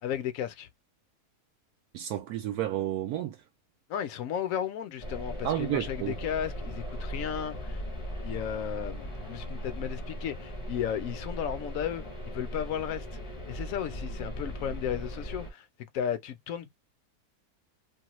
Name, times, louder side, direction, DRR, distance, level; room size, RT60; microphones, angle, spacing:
voice 1, 0.0-0.7 3.9-7.8 8.2-13.2 13.5-15.7 15.9-16.7, left 9 dB, 65° left, 0.9 m, -34 dB
voice 2, 1.9-3.4 5.4-6.2, right 12 dB, 75° right, 1.1 m, -31 dB
sound 1, 5.0-15.5, equal, 25° left, 0.7 m, -38 dB
2.8 x 2.3 x 3.0 m
omnidirectional pair, 1.7 m